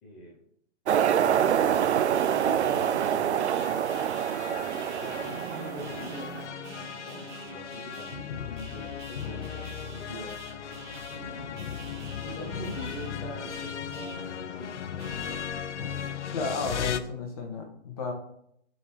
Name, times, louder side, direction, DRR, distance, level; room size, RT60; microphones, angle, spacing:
voice 1, 0.0-0.4 1.1-3.9 4.6-10.3 11.1-11.6 12.2-15.6 16.3-16.9, equal, 10° left, -7 dB, 0.7 m, -43 dB
sound 1, 0.9-6.4, right 9 dB, 70° right, 0.5 m, -26 dB
sound 2, 1.7-15.4, right 4 dB, 40° right, 1.3 m, -47 dB
sound 3, 3.6-17.0, left 8 dB, 75° left, 0.7 m, -37 dB
voice 2, 16.3-18.1, left 4 dB, 30° left, 1 dB, 1.7 m, -33 dB
9.1 x 3.9 x 4.7 m, 0.70 s
hypercardioid pair, 170°, 36 cm